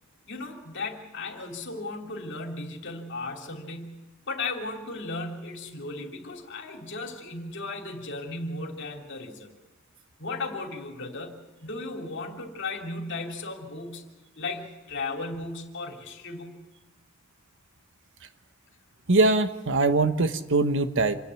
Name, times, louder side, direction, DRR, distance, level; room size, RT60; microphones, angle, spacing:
voice 1, 0.2-9.5 10.2-14.1 14.4-16.6, left 3 dB, 60° left, 3 dB, 3.1 m, -36 dB
voice 2, 19.1-21.2, right 3 dB, 60° right, 10 dB, 1.2 m, -22 dB
27.0 x 10.5 x 9.6 m, 1.1 s
head